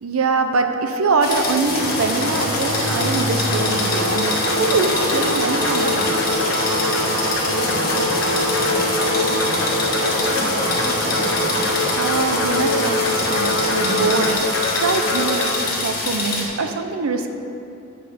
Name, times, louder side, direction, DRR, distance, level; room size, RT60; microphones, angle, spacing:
voice 1, 0.0-6.4 12.0-14.5 14.7-17.3, right 3 dB, 80° right, 6 dB, 0.6 m, -23 dB
sound 1, 1.2-16.5, left 3 dB, 45° left, 1.4 m, -26 dB
sound 2, 1.6-14.4, right 1 dB, 60° right, 1.4 m, -28 dB
sound 3, 1.8-15.5, left 1 dB, 65° left, 1.0 m, -24 dB
voice 2, 7.5-8.2 8.5-9.8 10.2-11.7, left 1 dB, 80° left, -3 dB, 1.7 m, -31 dB
7.7 x 4.3 x 6.8 m, 2.8 s
head